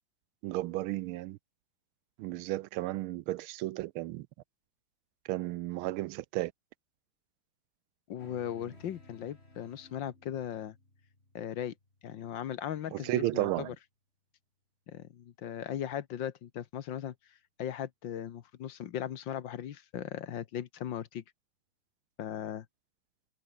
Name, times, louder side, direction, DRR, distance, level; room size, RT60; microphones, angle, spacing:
voice 1, 0.4-1.4 2.2-4.3 5.2-6.5 12.9-13.7, right 17 dB, 80° right, 1.5 m, -33 dB
voice 2, 8.1-10.8 11.3-11.7 12.0-13.7 14.9-17.1 17.6-21.2 22.2-22.7, left 10 dB, 65° left, 1.7 m, -38 dB
sound 1, 8.2-12.9, left 2 dB, 30° left, 4.9 m, -57 dB
omnidirectional pair, 2.3 m